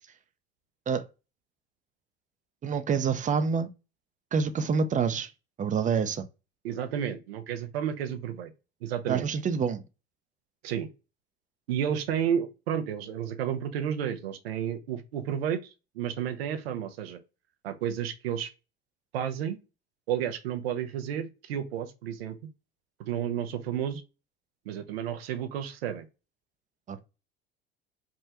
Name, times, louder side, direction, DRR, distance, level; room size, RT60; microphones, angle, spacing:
voice 1, 2.6-3.7 4.3-5.3 5.6-6.2 9.1-9.8 26.9-27.0, right 6 dB, 25° right, 0.5 m, -27 dB
voice 2, 6.6-8.5 8.8-9.3 10.6-10.9 11.7-17.2 17.6-18.5 19.1-19.6 20.1-22.4 23.1-24.0 24.7-26.1, right 9 dB, 80° right, 0.6 m, -31 dB
3.5 x 2.1 x 2.8 m
hypercardioid pair, 70°, 30 cm